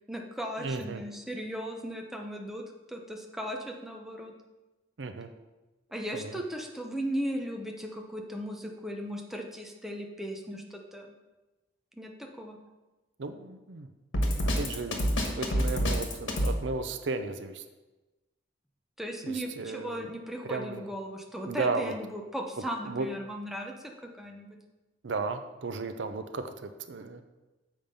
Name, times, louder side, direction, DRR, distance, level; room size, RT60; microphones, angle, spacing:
voice 1, 0.1-4.3 5.9-11.1 11.9-12.1 12.4-12.6 19.0-23.7 24.2-24.5, equal, ahead, 1 dB, 0.8 m, -37 dB
voice 2, 0.6-1.0 5.0-5.3 6.1-6.4 13.2-13.9 14.4-17.6 19.2-20.1 20.4-20.9 21.5-21.9 22.8-23.1 25.0-27.2, right 3 dB, 70° right, 9 dB, 0.5 m, -35 dB
Drum kit, 14.1-16.6, equal, 85° left, 1.4 m, -26 dB
7.2 x 5.2 x 5.3 m, 1.1 s
head